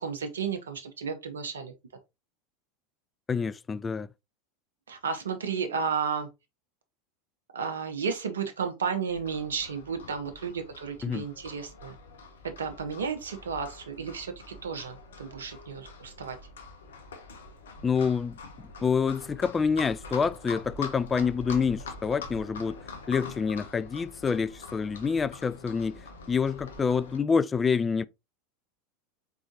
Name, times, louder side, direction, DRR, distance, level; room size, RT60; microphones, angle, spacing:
voice 1, 0.0-1.7 4.9-6.3 7.5-12.0 12.4-16.4, right 6 dB, 75° right, 0.7 m, -33 dB
voice 2, 3.3-4.1 11.0-11.2 17.8-18.4 18.8-22.8 23.1-28.1, left 5 dB, 20° left, 0.3 m, -27 dB
Livestock farm animals working animals, 9.1-27.2, left 3 dB, 70° left, 0.9 m, -44 dB
4.3 x 3.7 x 2.8 m
figure-of-eight pair, 80°, 0 cm